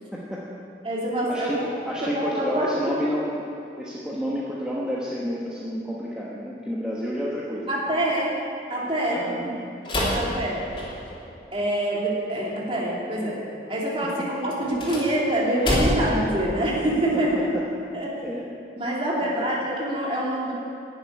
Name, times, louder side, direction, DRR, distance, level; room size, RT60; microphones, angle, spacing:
voice 1, 0.1-0.4 1.3-3.4 3.8-7.8 9.0-9.6 10.1-10.5 17.3-17.4 18.2-18.5 19.3-19.5, equal, 5° right, -6 dB, 1.2 m, -30 dB
voice 2, 0.8-1.7 2.0-3.0 7.5-8.4 8.7-9.3 10.1-10.6 11.5-13.4 13.7-17.3 17.9-18.1 18.7-20.6, right 1 dB, 30° right, -5 dB, 2.7 m, -25 dB
sound 1, 9.8-11.2 14.6-16.2, equal, 30° left, 3.2 m, -27 dB
11.0 x 7.7 x 9.7 m, 2.7 s
head